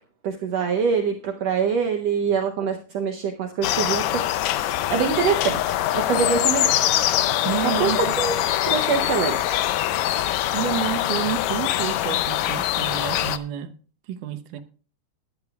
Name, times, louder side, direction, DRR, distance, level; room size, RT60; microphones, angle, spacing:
voice 1, 0.2-6.7 7.6-8.3 8.7-9.8, right 6 dB, 70° right, 1.7 m, -25 dB
sound 1, 3.6-13.4, left 13 dB, 75° left, 1.7 m, -23 dB
voice 2, 7.4-8.2 10.5-13.8 14.1-14.6, right 10 dB, 85° right, 2.4 m, -29 dB
18.5 x 11.0 x 2.3 m
omnidirectional pair, 3.6 m